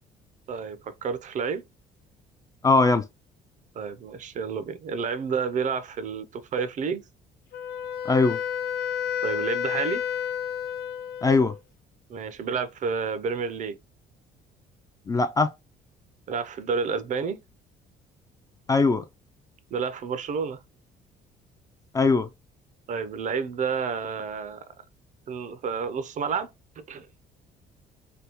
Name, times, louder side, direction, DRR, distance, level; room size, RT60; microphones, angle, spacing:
voice 1, 0.5-1.6 3.7-7.0 9.2-10.0 12.1-13.8 16.3-17.4 19.7-20.6 22.9-24.6 25.3-26.5 26.8-27.1, right 5 dB, 45° right, 0.5 m, -30 dB
voice 2, 2.6-3.0 8.1-8.4 11.2-11.5 15.1-15.5 18.7-19.0 21.9-22.3, left 3 dB, 20° left, 0.3 m, -20 dB
Wind instrument woodwind instrument, 7.5-11.6, left 9 dB, 70° left, 0.7 m, -30 dB
3.4 x 2.2 x 2.9 m
cardioid pair, 110°, 17 cm